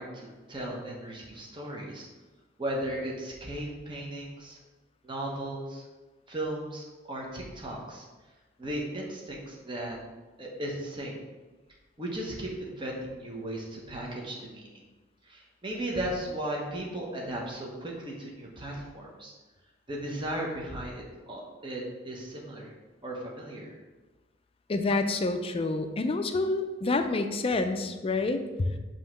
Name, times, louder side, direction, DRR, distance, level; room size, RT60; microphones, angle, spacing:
voice 1, 0.0-2.1 2.6-4.6 5.0-5.8 6.3-8.0 8.6-10.0 10.4-11.2 12.0-14.7 15.3-19.3 19.9-22.7 23.0-23.7, right 1 dB, 25° right, -2 dB, 1.1 m, -36 dB
voice 2, 24.7-28.8, left 3 dB, 30° left, 7 dB, 0.4 m, -28 dB
5.6 x 3.1 x 5.6 m, 1.2 s
head